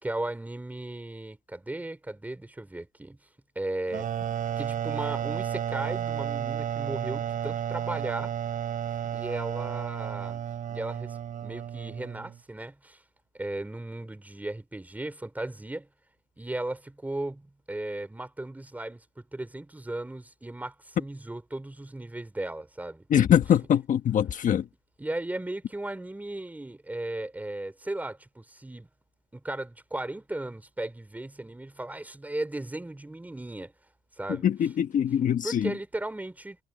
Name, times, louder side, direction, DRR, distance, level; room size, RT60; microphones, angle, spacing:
voice 1, 0.0-3.2 3.6-4.1 4.6-8.3 9.0-10.4 10.7-13.0 13.3-15.9 16.4-23.0 25.0-28.9 29.3-33.7 34.2-34.5 35.4-36.6, right 1 dB, 10° right, 3.8 m, -36 dB
sound 1, 3.9-12.4, right 9 dB, 50° right, 4.9 m, -32 dB
voice 2, 23.1-24.7 34.3-35.7, left 9 dB, 50° left, 1.4 m, -23 dB
cardioid pair, 110°, 17 cm